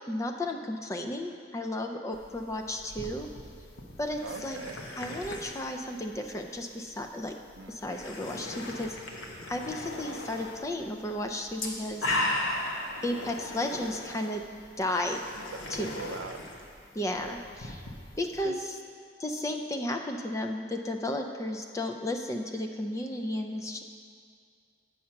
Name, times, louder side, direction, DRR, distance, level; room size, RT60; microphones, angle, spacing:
voice 1, 0.1-3.3 4.0-4.6 5.0-7.4 7.7-9.0 9.5-12.2 13.0-14.4 14.8-15.2 15.7-15.9 16.9-17.8 18.2-18.7 19.2-23.8, left 1 dB, 15° left, 4 dB, 0.4 m, -33 dB
sound 1, 2.1-18.4, left 1 dB, 85° left, 0.9 m, -39 dB
voice 2, 4.2-4.8 7.6-7.8 12.1-12.3 15.4-16.7 17.2-17.3 18.4-18.5, right 4 dB, 85° right, 8 dB, 0.5 m, -42 dB
sound 2, 7.3-7.4 7.8-9.0 9.4-11.1 12.2-16.2, left 2 dB, 65° left, 0.6 m, -43 dB
7.5 x 5.6 x 5.8 m, 2.2 s
head